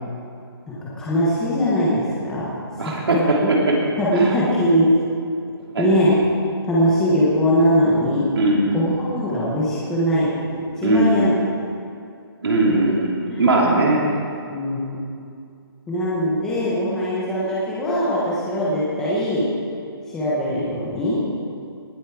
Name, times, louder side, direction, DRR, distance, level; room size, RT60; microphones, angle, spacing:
voice 1, 0.7-2.5 2.8-3.5 4.0-4.9 5.8-6.1 6.6-8.3 8.7-11.3 12.7-12.8 13.3-13.4 14.5-15.0 15.9-19.5 20.1-21.2, equal, 5° left, -8 dB, 1.0 m, -21 dB
voice 2, 2.8-3.8 4.1-4.3 5.7-5.9 8.3-8.8 10.8-11.3 12.4-14.0, right 2 dB, 70° right, -3 dB, 3.4 m, -19 dB
19.0 x 8.2 x 4.7 m, 2.4 s
hypercardioid pair, 175°, 13 cm